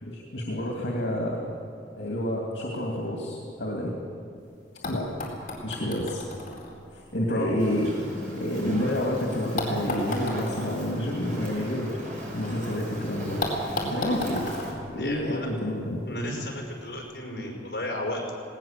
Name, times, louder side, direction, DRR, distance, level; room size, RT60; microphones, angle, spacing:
voice 1, 0.0-1.4 2.0-3.9 4.8-5.1 5.6-6.2 6.9-7.9 8.4-12.0 12.3-13.4 13.8-14.5 14.9-16.0, left 1 dB, 85° left, -1 dB, 2.5 m, -29 dB
sound 1, 4.4-4.5 4.8-8.9 9.6-12.5 12.8-12.9 13.4-15.8 16.8-16.9, left 1 dB, 45° left, 4.4 m, -35 dB
Fire, 7.6-14.7, equal, 45° right, 5.3 m, -39 dB
voice 2, 15.0-15.5 16.1-18.3, left 1 dB, 60° left, 0 dB, 5.4 m, -34 dB
19.0 x 18.0 x 7.5 m, 2.5 s
head